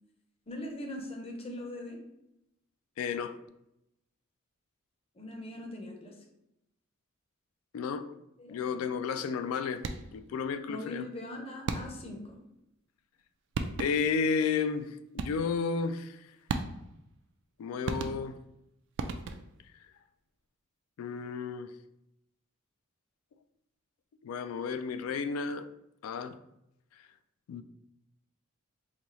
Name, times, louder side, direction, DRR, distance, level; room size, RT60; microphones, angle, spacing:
voice 1, 0.5-2.0 5.2-6.1 8.4-8.8 10.7-12.4, left 1 dB, 30° left, 0.6 m, -41 dB
voice 2, 3.0-3.4 7.7-8.1 8.5-9.9 10.1-11.1 13.8-14.9 15.1-16.2 17.6-18.4 21.0-21.7 24.2-25.7 26.0-26.4 27.5-27.6, left 5 dB, 85° left, 0.3 m, -32 dB
sound 1, 9.8-10.3 11.7-12.2 13.2-13.3 13.5-14.2 15.2-15.6 16.5-17.0 17.8-18.5 19.0-19.7, right 4 dB, 60° right, 0.3 m, -36 dB
4.1 x 2.3 x 3.0 m
head